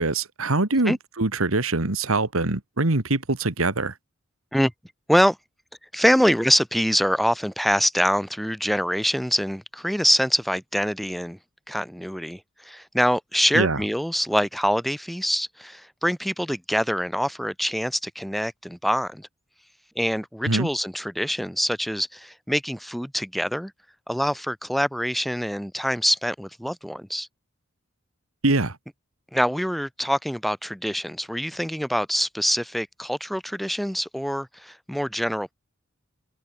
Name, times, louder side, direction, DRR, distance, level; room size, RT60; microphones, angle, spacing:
voice 1, 0.0-3.9 13.5-13.8 20.4-20.7 28.4-28.7, right 2 dB, 85° right, 2.1 m, -23 dB
voice 2, 5.9-11.4 11.7-19.3 20.0-23.7 24.1-27.3 29.3-35.5, equal, ahead, 3.5 m, -25 dB
head